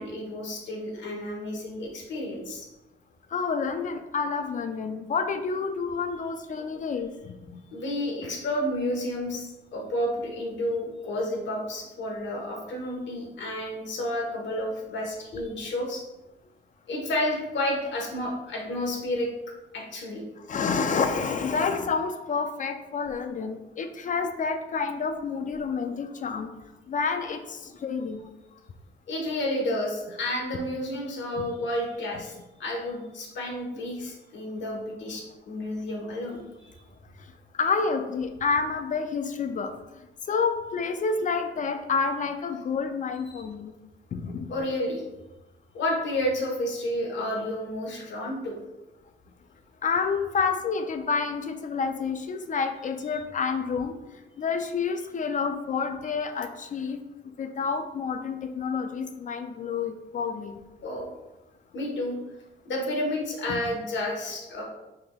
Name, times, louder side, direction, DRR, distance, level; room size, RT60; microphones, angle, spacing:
voice 1, 0.0-2.7 6.6-6.7 7.7-16.0 16.9-19.3 19.7-20.2 29.1-32.3 32.6-36.8 43.3-43.4 44.5-45.0 45.7-48.5 60.8-61.1 61.7-62.2 62.6-64.6, left 1 dB, 65° left, -1 dB, 1.3 m, -31 dB
voice 2, 3.3-7.6 20.5-26.5 26.9-28.2 31.4-31.5 37.5-43.7 44.1-44.5 49.8-53.9 54.4-57.0 57.4-60.6 63.5-63.6, left 5 dB, 40° left, 7 dB, 0.4 m, -29 dB
5.6 x 3.3 x 2.3 m, 1.0 s
cardioid pair, 90°, 20 cm